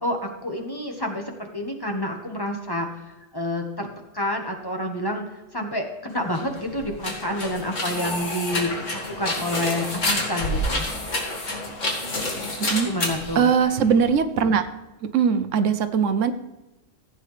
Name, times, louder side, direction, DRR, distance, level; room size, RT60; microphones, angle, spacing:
voice 1, 0.0-2.9 3.3-3.9 4.1-5.2 5.5-10.9 12.8-13.5, left 1 dB, 20° left, 2 dB, 1.3 m, -28 dB
sound 1, 6.3-14.1, left 1 dB, 75° left, 2.5 m, -29 dB
voice 2, 12.6-12.9 13.4-14.7 15.0-16.3, right 6 dB, 80° right, 10 dB, 1.1 m, -21 dB
15.0 x 8.7 x 3.3 m, 1.0 s
omnidirectional pair, 1.3 m